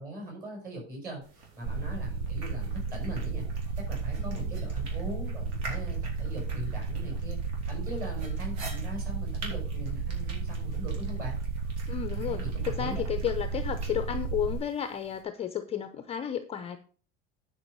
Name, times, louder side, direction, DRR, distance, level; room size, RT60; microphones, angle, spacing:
voice 1, 0.0-3.5 3.8-7.4 7.7-11.4 12.1-13.0, right 1 dB, 30° right, 0 dB, 5.8 m, -40 dB
sound 1, 1.2-15.2, right 3 dB, 55° right, 4.7 m, -48 dB
sound 2, 1.6-14.6, right 4 dB, 80° right, 0.8 m, -33 dB
voice 2, 4.2-4.6 11.9-12.4 12.6-16.8, left 9 dB, 20° left, 9 dB, 0.5 m, -33 dB
10.0 x 5.4 x 6.6 m, 0.41 s
cardioid pair, 175°, 30 cm